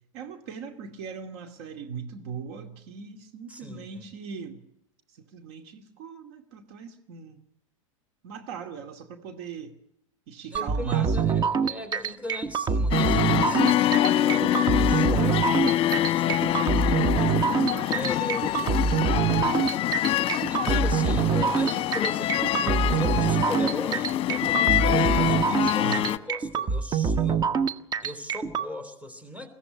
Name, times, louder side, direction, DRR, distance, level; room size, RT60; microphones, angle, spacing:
voice 1, 0.1-4.6 5.1-7.4 8.2-9.7 10.3-11.3 13.5-13.8 17.6-18.4 19.1-19.6 25.7-26.0, right 7 dB, 50° right, 7 dB, 2.4 m, -39 dB
voice 2, 3.5-4.1 10.5-18.7 20.4-27.5 28.0-29.5, left 1 dB, 10° right, 12 dB, 3.2 m, -39 dB
sound 1, 10.5-28.7, right 6 dB, 25° right, 1.1 m, -25 dB
sound 2, 12.9-26.2, left 12 dB, 30° left, 1.1 m, -25 dB
22.5 x 16.0 x 9.8 m, 0.80 s
figure-of-eight pair, 95°, 17 cm